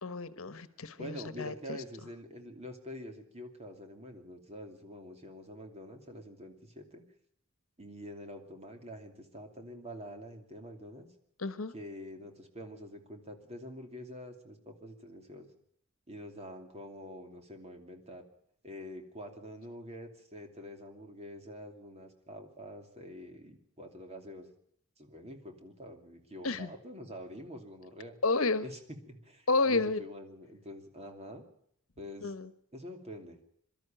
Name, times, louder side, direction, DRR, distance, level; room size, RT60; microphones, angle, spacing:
voice 1, 0.0-1.8 11.4-11.7 26.4-26.7 28.2-28.7 29.5-30.0 32.2-32.5, left 3 dB, 70° left, 14 dB, 1.2 m, -31 dB
voice 2, 1.0-7.0 7.8-11.1 11.7-15.5 16.1-18.2 18.6-24.5 25.0-28.2 28.6-28.8 29.1-31.4 32.0-32.3 32.7-33.4, equal, 30° right, 4 dB, 2.8 m, -46 dB
23.5 x 13.0 x 9.0 m, 0.70 s
head